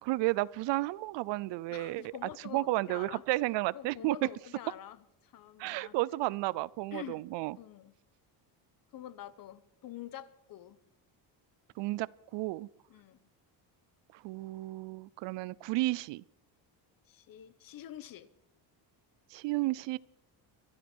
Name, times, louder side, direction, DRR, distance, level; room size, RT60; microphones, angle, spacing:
voice 1, 0.0-2.1 2.5-4.2 5.6-7.6 11.8-12.1 12.3-12.7 14.1-16.2 19.3-20.0, right 19 dB, 70° right, 0.6 m, -32 dB
voice 2, 1.7-3.2 3.7-6.0 6.9-7.2 7.6-7.9 8.9-10.8 12.9-13.3 17.1-18.3, left 11 dB, 50° left, 1.0 m, -47 dB
23.5 x 12.5 x 4.5 m
cardioid pair, 140°, 45 cm